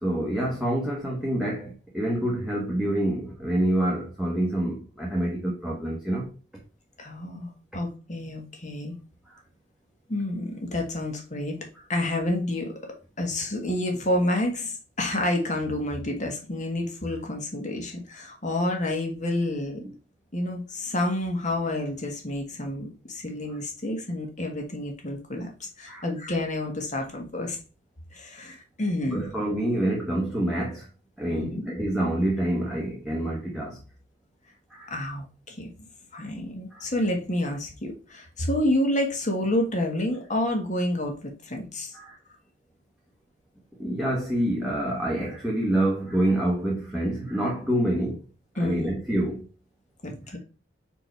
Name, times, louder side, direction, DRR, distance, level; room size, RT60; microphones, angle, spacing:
voice 1, 0.0-6.3 25.9-26.1 29.1-30.9 31.2-33.8 34.7-34.9 36.7-36.9 41.9-42.2 43.8-48.2 48.6-49.4, right 1 dB, ahead, 1.2 m, -27 dB
voice 2, 7.0-9.0 10.1-11.6 11.9-12.7 13.2-19.8 20.3-27.6 28.1-29.2 31.3-31.6 34.9-35.9 36.1-41.9 48.6-48.9 50.0-50.4, left 1 dB, 40° left, 1.7 m, -29 dB
4.7 x 4.5 x 4.5 m
head